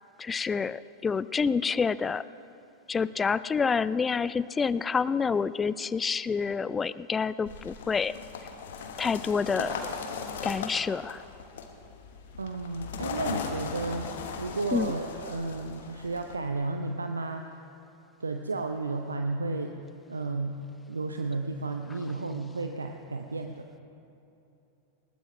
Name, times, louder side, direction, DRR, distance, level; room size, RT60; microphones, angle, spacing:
voice 1, 0.2-2.2 2.9-8.1 9.0-9.8 10.4-11.2 14.7-14.9, left 5 dB, 15° left, 18 dB, 0.4 m, -28 dB
sound 1, 7.5-16.4, left 5 dB, 60° left, 1.4 m, -38 dB
voice 2, 12.4-17.6 18.2-19.8 20.1-23.7, right 3 dB, 75° right, 5 dB, 0.7 m, -33 dB
20.0 x 19.5 x 3.3 m, 2.8 s
figure-of-eight pair, 90°, 0 cm